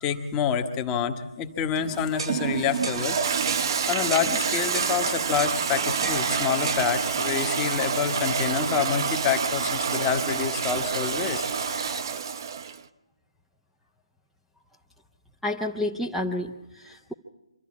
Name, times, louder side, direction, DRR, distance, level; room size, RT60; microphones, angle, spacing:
voice 1, 0.0-3.2 3.9-11.4, left 8 dB, 15° left, 6 dB, 1.1 m, -27 dB
Toilet flush, 1.8-12.8, right 6 dB, 40° right, 0.8 m, -28 dB
sound 1, 2.2-2.4 2.8-3.0 3.5-3.7 4.1-4.3 4.7-5.0 5.4-5.6 6.0-6.2 6.7-6.9, right 4 dB, 60° right, 1.6 m, -34 dB
sound 2, 2.7-12.0, right 2 dB, 80° right, 2.2 m, -37 dB
voice 2, 15.4-17.1, left 1 dB, ahead, -3 dB, 0.6 m, -30 dB
25.0 x 12.5 x 8.6 m, 1.0 s
figure-of-eight pair, 155°, 3 cm